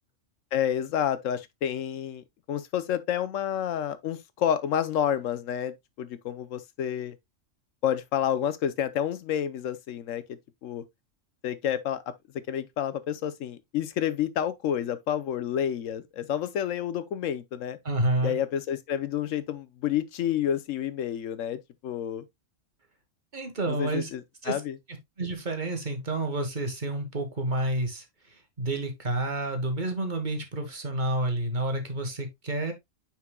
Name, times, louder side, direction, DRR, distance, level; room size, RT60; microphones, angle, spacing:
voice 1, 0.5-7.1 7.8-10.8 11.4-12.0 12.5-17.8 18.2-22.2 23.7-24.8, left 9 dB, 85° left, 1.1 m, -29 dB
voice 2, 17.8-18.3 23.3-24.1 24.4-24.6 25.2-32.7, right 1 dB, 40° right, 1.5 m, -29 dB
9.4 x 4.5 x 2.2 m
omnidirectional pair, 1.3 m